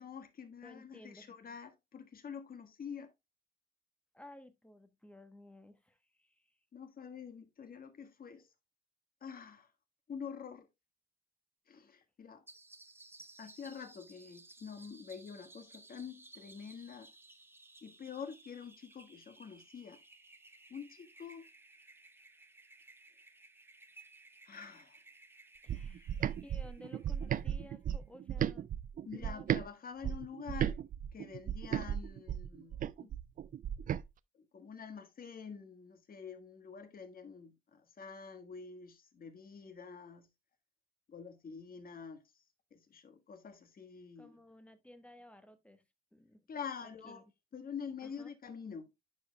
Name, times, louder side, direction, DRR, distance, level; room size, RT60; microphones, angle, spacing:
voice 1, 0.0-3.1 6.7-8.5 9.2-9.7 10.1-10.7 11.7-12.4 13.4-17.1 17.8-20.0 20.7-21.4 24.4-25.0 25.9-26.3 29.0-30.8 31.1-33.1 34.3-40.3 41.1-42.2 42.7-44.4 46.5-47.2 47.5-48.9, left 6 dB, 45° left, 1.5 m, -47 dB
voice 2, 0.6-1.3 4.1-6.5 25.6-26.0 26.4-28.7 29.1-29.5 44.2-45.8 46.1-46.5 46.8-47.2 48.0-48.3, left 1 dB, 5° left, 1.1 m, -56 dB
sound 1, 12.5-27.7, right 2 dB, 10° right, 0.8 m, -59 dB
sound 2, 25.7-29.7 30.0-34.0, right 10 dB, 45° right, 0.4 m, -36 dB
11.0 x 5.0 x 2.2 m
cardioid pair, 90°, 20 cm